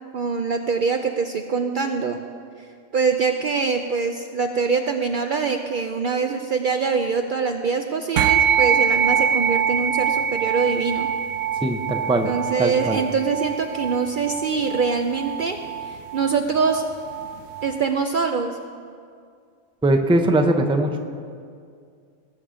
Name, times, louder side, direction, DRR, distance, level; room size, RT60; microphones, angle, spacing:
voice 1, 0.1-2.2 2.9-11.1 12.2-16.9 17.6-18.6, right 5 dB, 55° right, 5 dB, 0.6 m, -24 dB
sound 1, 8.2-17.8, right 8 dB, 90° right, 1.0 m, -24 dB
voice 2, 11.6-12.3 12.6-13.0 19.8-21.0, right 1 dB, 5° right, 5 dB, 0.5 m, -20 dB
19.0 x 7.0 x 5.0 m, 2.2 s
omnidirectional pair, 1.3 m